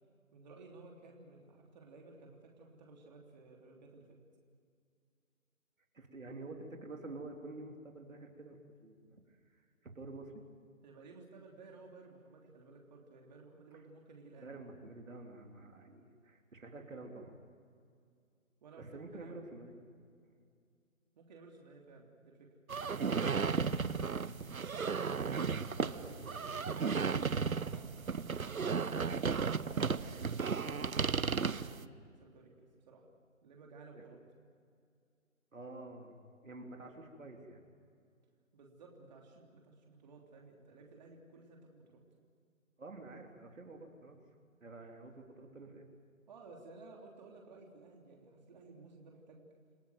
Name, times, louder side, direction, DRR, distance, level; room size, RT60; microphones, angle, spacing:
voice 1, 0.3-4.2 10.8-14.5 18.6-18.9 19.1-19.5 21.1-22.5 25.6-27.9 28.8-32.5 32.9-33.0 33.4-34.2 38.5-42.0 46.3-49.4, right 3 dB, 30° right, 0 dB, 3.3 m, -56 dB
voice 2, 5.9-9.2 9.5-9.7 9.9-10.3 14.4-17.3 18.8-19.8 25.0-25.4 25.8-26.1 33.9-34.1 35.5-36.2 36.4-37.6 42.8-44.2 44.6-45.9, right 2 dB, 70° right, 2 dB, 3.6 m, -49 dB
sound 1, 22.7-31.8, right 5 dB, 85° right, 1.0 m, -34 dB
28.0 x 16.5 x 9.3 m, 2.3 s
figure-of-eight pair, 155°, 41 cm